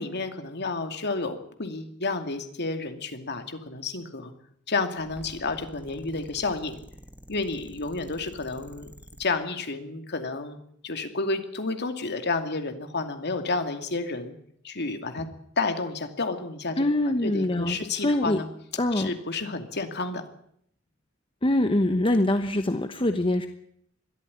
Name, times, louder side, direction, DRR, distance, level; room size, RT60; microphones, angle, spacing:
voice 1, 0.0-4.3 4.7-6.8 7.3-8.9 9.2-10.6 10.8-14.3 14.6-15.3 15.6-18.5 18.9-20.3, left 3 dB, 55° left, 7 dB, 2.6 m, -31 dB
sound 1, 5.0-9.3, equal, 5° right, 2.5 m, -48 dB
voice 2, 16.8-18.4 18.8-19.1 21.4-23.5, left 1 dB, 25° left, 8 dB, 1.1 m, -24 dB
21.5 x 13.5 x 10.0 m, 0.70 s
head